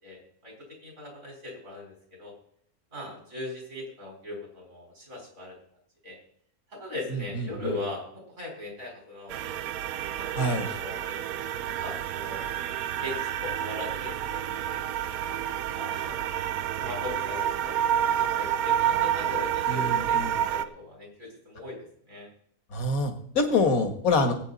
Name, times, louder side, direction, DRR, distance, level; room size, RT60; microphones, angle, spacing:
voice 1, 0.0-2.3 2.9-5.6 6.0-6.2 6.7-9.6 10.2-11.2 11.7-12.5 13.0-14.4 15.1-15.4 15.7-16.2 16.8-22.3, left 2 dB, 60° right, -1 dB, 5.0 m, -40 dB
sound 1, 9.3-20.7, right 10 dB, 75° right, 1.1 m, -29 dB
voice 2, 10.4-10.7 19.7-20.3 22.7-24.3, left 2 dB, 65° left, 6 dB, 2.0 m, -25 dB
19.5 x 8.6 x 4.1 m, 0.65 s
omnidirectional pair, 1.6 m